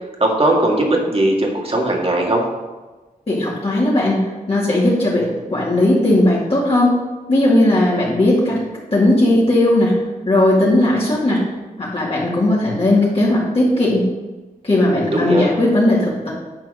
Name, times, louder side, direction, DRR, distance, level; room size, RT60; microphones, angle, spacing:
voice 1, 0.2-2.4 15.1-15.5, right 1 dB, 40° right, 0 dB, 1.9 m, -18 dB
voice 2, 3.3-4.2 4.5-6.9 7.3-8.6 8.9-9.9 10.3-11.4 11.8-14.0 14.6-16.3, left 1 dB, 40° left, -8 dB, 2.5 m, -16 dB
10.5 x 4.5 x 6.5 m, 1.2 s
wide cardioid pair, 90°, 15 cm